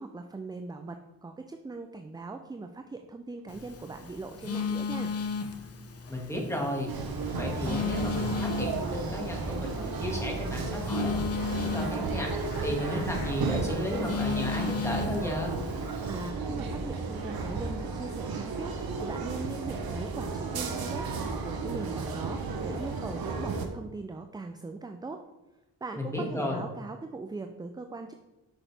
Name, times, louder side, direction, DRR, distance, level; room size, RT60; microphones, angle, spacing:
voice 1, 0.0-5.1 16.1-25.2 25.8-28.1, right 3 dB, 10° right, 6 dB, 0.4 m, -40 dB
sound 1, 3.3-4.2 4.5-13.3, left 3 dB, 65° left, 2.1 m, -52 dB
Telephone, 3.5-16.3, left 5 dB, 35° left, 0.8 m, -36 dB
voice 2, 6.1-6.9 7.2-12.3 12.6-15.6 26.0-26.6, left 1 dB, 5° left, -1 dB, 2.0 m, -33 dB
sound 2, 6.9-23.7, right 4 dB, 60° right, 1.0 m, -33 dB
6.1 x 5.8 x 3.4 m, 1.0 s
supercardioid pair, 55°, 41 cm